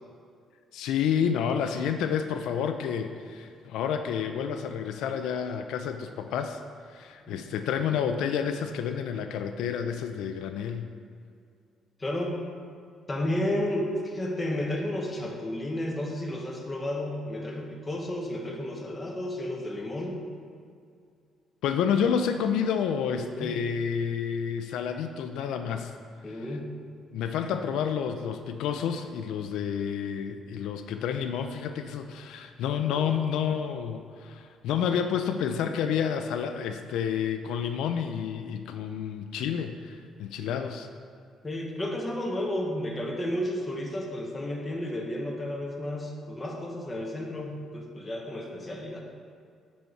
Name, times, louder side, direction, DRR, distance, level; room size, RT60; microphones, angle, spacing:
voice 1, 0.7-6.6 6.9-10.9 21.6-25.9 26.3-26.4 27.1-40.9, left 7 dB, 85° left, 7 dB, 0.4 m, -29 dB
voice 2, 12.0-12.4 13.1-20.2 23.2-23.5 25.4-25.5 26.2-26.7 32.9-33.1 41.4-49.0, left 1 dB, 20° left, 0 dB, 1.2 m, -32 dB
10.0 x 4.2 x 4.6 m, 2.3 s
cardioid pair, 135°, 0 cm